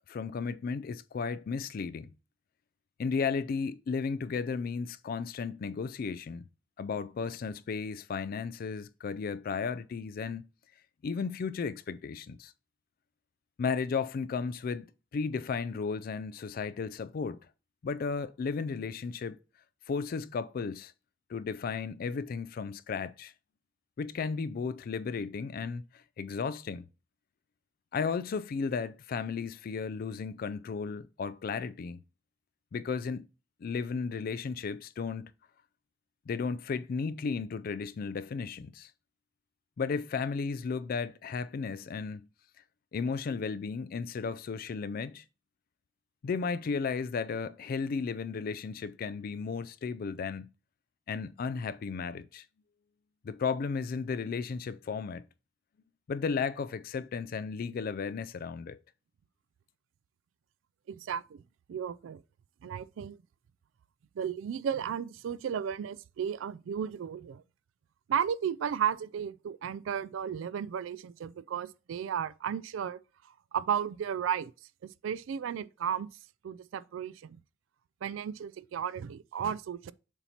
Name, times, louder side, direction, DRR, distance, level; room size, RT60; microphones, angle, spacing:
voice 1, 0.1-2.1 3.0-6.5 6.8-10.5 11.0-12.5 13.6-14.9 15.1-17.4 17.8-19.4 19.9-20.9 21.3-23.3 24.0-26.8 27.9-32.0 32.7-33.3 33.6-35.3 36.3-38.9 39.8-42.3 42.9-45.2 46.2-50.5 51.1-52.4 53.2-55.2 56.1-58.8, left 5 dB, 50° left, 0.3 m, -34 dB
voice 2, 60.9-61.4 61.7-62.2 62.6-63.2 64.2-67.4 68.1-73.0 73.2-74.5 75.0-76.1 76.4-77.4 78.0-79.9, right 8 dB, 75° right, 0.3 m, -34 dB
7.0 x 2.8 x 5.6 m
head